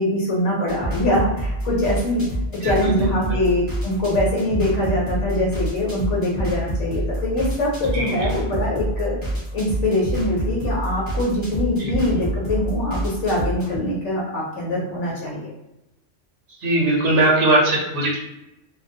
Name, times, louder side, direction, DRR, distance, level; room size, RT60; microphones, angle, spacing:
voice 1, 0.0-2.2 2.5-9.2 9.5-15.5, left 1 dB, 75° left, -3 dB, 0.9 m, -23 dB
sound 1, 0.7-13.8, equal, 20° left, 0.9 m, -27 dB
voice 2, 2.6-3.4 7.9-8.3 11.8-11.9 12.2-12.3 16.6-18.2, right 2 dB, 75° right, -2 dB, 1.0 m, -20 dB
2.3 x 2.1 x 2.6 m, 0.91 s
omnidirectional pair, 1.3 m